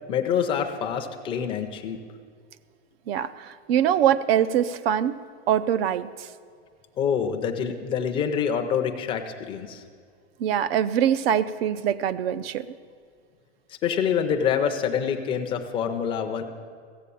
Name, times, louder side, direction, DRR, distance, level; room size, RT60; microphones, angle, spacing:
voice 1, 0.1-2.0 7.0-9.8 13.8-16.4, left 7 dB, 15° left, 5 dB, 0.6 m, -26 dB
voice 2, 3.1-5.2 5.5-6.3 10.4-12.6, right 9 dB, 55° right, 14 dB, 0.6 m, -23 dB
15.0 x 7.4 x 8.5 m, 2.1 s
supercardioid pair, 165°, 35 cm